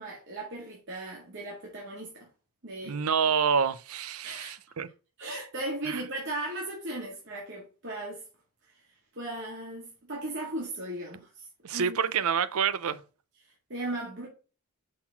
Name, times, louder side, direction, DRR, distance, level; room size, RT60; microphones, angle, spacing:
voice 1, 0.0-2.3 2.6-3.0 4.2-4.6 5.2-8.2 8.7-8.8 9.1-12.1 13.7-14.3, right 1 dB, 55° right, 1.9 m, -37 dB
voice 2, 2.8-4.9 5.9-6.0 11.6-13.0, right 6 dB, 75° right, 0.6 m, -27 dB
6.3 x 3.9 x 5.7 m
head